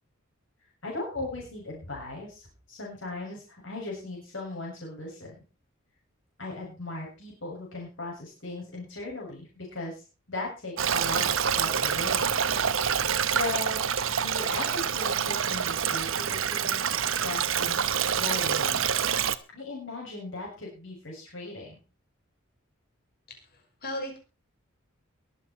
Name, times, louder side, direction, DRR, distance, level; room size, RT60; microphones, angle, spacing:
voice 1, 0.8-5.3 6.4-12.6 13.3-13.8 14.1-18.9 19.5-21.8, left 2 dB, 65° left, -2 dB, 7.1 m, -38 dB
Stream, 10.8-19.4, right 7 dB, 70° right, 1.0 m, -27 dB
voice 2, 23.3-24.2, left 1 dB, 50° left, 3 dB, 5.7 m, -37 dB
23.0 x 8.4 x 4.5 m, 0.34 s
head